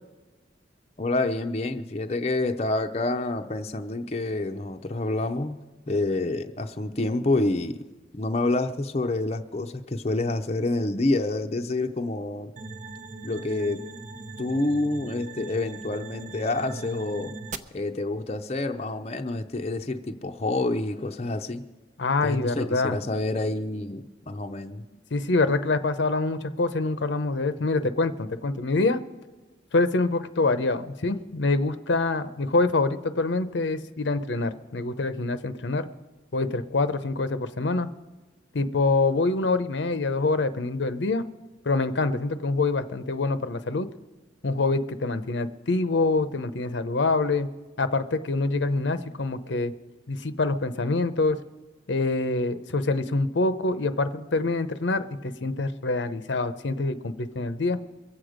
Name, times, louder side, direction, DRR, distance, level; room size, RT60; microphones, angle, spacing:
voice 1, 1.0-5.6 5.9-7.8 8.1-12.5 13.2-13.8 14.4-17.3 17.7-21.6 22.2-24.8, left 2 dB, 35° left, 5 dB, 0.6 m, -28 dB
sound 1, 12.6-17.6, right 3 dB, 40° right, 0.6 m, -40 dB
voice 2, 22.0-23.0 25.1-29.0 29.7-35.9 36.3-37.9 38.5-41.2 41.6-43.9 44.4-47.5 47.8-49.7 50.1-51.4 51.9-57.8, left 3 dB, 80° left, 11 dB, 0.7 m, -25 dB
23.0 x 7.9 x 5.0 m, 1.2 s
head